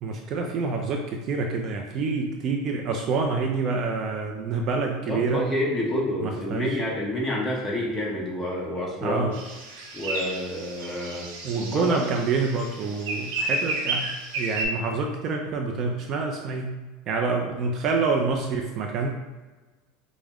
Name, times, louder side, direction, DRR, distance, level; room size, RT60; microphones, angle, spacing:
voice 1, 0.0-5.4 6.2-6.8 9.0-9.3 11.4-14.1 14.3-16.7 17.1-19.1, right 4 dB, 40° right, 2 dB, 0.4 m, -27 dB
voice 2, 5.0-9.3 9.9-11.2 11.6-12.1, left 1 dB, 15° left, -4 dB, 1.1 m, -28 dB
sound 1, 9.3-14.6, right 2 dB, 85° right, 1.1 m, -32 dB
4.9 x 2.1 x 3.5 m, 1.2 s
supercardioid pair, 145°, 0 cm